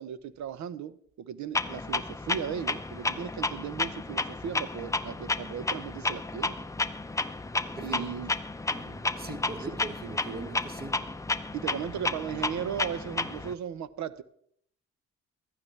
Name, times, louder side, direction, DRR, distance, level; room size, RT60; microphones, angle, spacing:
voice 1, 0.0-6.5 7.8-8.3 11.5-14.2, right 8 dB, 70° right, 0.9 m, -36 dB
Clock, 1.5-13.5, left 3 dB, 10° left, 0.6 m, -32 dB
voice 2, 7.7-8.2 8.7-11.2, right 3 dB, 30° right, 1.3 m, -41 dB
15.5 x 12.5 x 3.3 m
cardioid pair, 90°, 30 cm